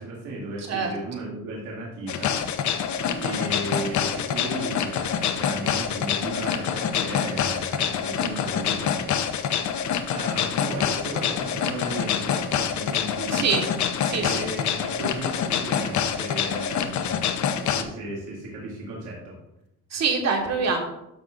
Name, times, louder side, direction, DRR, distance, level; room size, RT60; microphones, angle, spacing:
voice 1, 0.0-2.4 2.8-8.9 10.1-13.6 14.1-19.3, right 1 dB, 80° right, -5 dB, 2.5 m, -35 dB
sound 1, 2.1-17.8, left 8 dB, 65° left, 0.7 m, -26 dB
voice 2, 3.1-3.4 13.3-13.7 14.1-14.4 19.9-20.8, right 5 dB, 60° right, 2 dB, 1.7 m, -25 dB
12.5 x 6.1 x 2.5 m, 0.87 s
cardioid pair, 120°, 31 cm